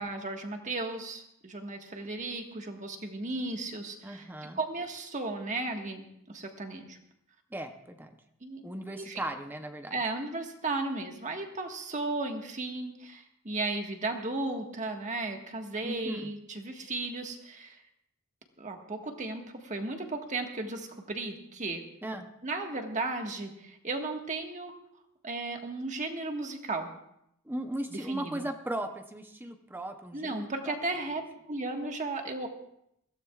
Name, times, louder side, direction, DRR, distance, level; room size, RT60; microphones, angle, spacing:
voice 1, 0.0-4.3 4.5-7.0 8.4-8.6 9.0-9.2 9.9-17.8 18.6-21.8 22.4-24.7 25.2-26.9 27.9-28.4 30.1-32.5, right 2 dB, 35° right, 3 dB, 1.5 m, -35 dB
voice 2, 4.0-4.6 7.5-8.2 8.6-10.0 15.8-16.3 22.0-22.3 27.4-30.8, right 1 dB, 10° right, 6 dB, 0.7 m, -37 dB
21.5 x 16.0 x 2.4 m, 0.77 s
head